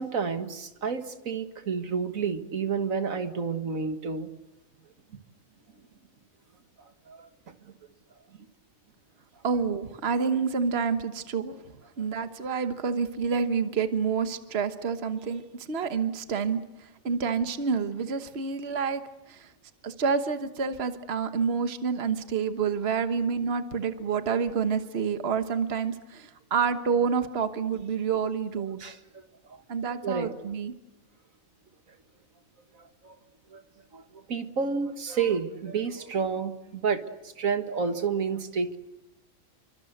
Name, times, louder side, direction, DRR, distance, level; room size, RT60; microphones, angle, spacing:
voice 1, 0.0-4.3 6.8-7.5 12.0-12.1 28.6-29.6 30.0-30.3 32.7-33.2 33.5-33.6 33.9-38.8, right 5 dB, 85° right, 9 dB, 2.0 m, -30 dB
voice 2, 9.4-11.6 12.0-19.5 19.8-28.8 29.7-30.7, right 6 dB, 50° right, 9 dB, 1.5 m, -28 dB
29.0 x 24.5 x 7.9 m, 0.93 s
omnidirectional pair, 1.4 m